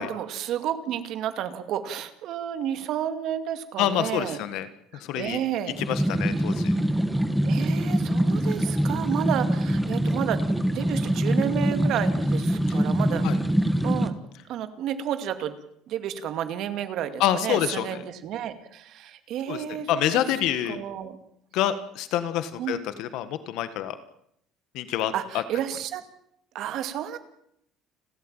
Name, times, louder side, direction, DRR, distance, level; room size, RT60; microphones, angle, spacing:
voice 1, 0.0-4.4 5.1-5.8 7.4-13.3 13.8-14.2 14.5-15.6 15.9-20.2 20.7-21.2 22.6-22.8 25.1-26.0 26.5-27.2, right 10 dB, 50° right, 9 dB, 2.3 m, -31 dB
voice 2, 3.8-4.7 4.9-5.4 5.8-6.7 12.7-12.8 13.2-13.4 17.2-18.0 19.5-20.8 21.5-24.0 24.7-25.4, left 11 dB, 60° left, 12 dB, 1.6 m, -27 dB
sound 1, 5.7-14.1, right 1 dB, ahead, 1.4 m, -24 dB
30.0 x 13.0 x 9.0 m, 0.74 s
cardioid pair, 170°, 0 cm